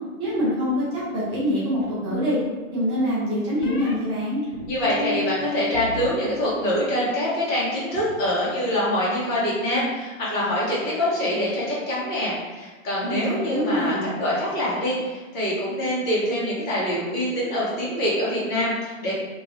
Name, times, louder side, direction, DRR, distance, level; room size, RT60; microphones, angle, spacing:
voice 1, 0.2-2.4 2.7-4.4 13.0-14.1, equal, 20° right, -8 dB, 0.5 m, -25 dB
sound 1, 1.8-2.6 3.6-4.0 4.5-6.1 6.4-6.9, left 4 dB, 80° left, 0.8 m, -33 dB
voice 2, 4.7-19.1, left 1 dB, 20° left, -7 dB, 1.1 m, -25 dB
2.8 x 2.6 x 3.0 m, 1.3 s
hypercardioid pair, 140°, 42 cm